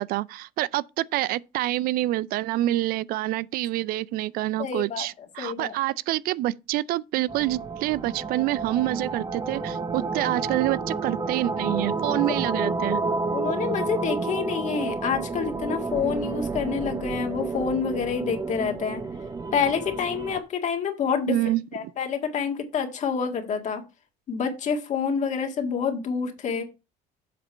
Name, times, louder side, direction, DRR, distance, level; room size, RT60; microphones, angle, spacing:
voice 1, 0.0-13.0 21.3-21.6 26.5-26.6, right 16 dB, 65° right, 0.4 m, -27 dB
voice 2, 4.6-5.1 5.4-5.8 13.3-19.0 19.5-21.4 21.7-23.8 24.3-26.6, left 6 dB, 45° left, 1.9 m, -27 dB
sound 1, 7.3-20.4, right 3 dB, 20° right, 1.0 m, -30 dB
7.7 x 5.0 x 5.5 m
cardioid pair, 105°, 16 cm